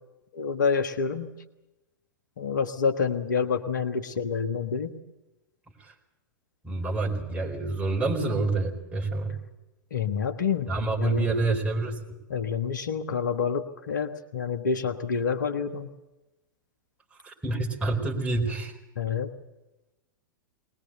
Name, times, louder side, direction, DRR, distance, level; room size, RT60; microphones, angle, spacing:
voice 1, 0.3-1.3 2.4-4.9 9.9-10.7 11.0-11.3 12.3-15.9 19.0-19.3, left 6 dB, 65° left, 9 dB, 1.4 m, -28 dB
voice 2, 6.6-9.4 10.7-12.0 17.2-18.7, right 3 dB, 10° right, -1 dB, 4.3 m, -27 dB
21.5 x 20.0 x 8.0 m, 1.0 s
figure-of-eight pair, 95°, 11 cm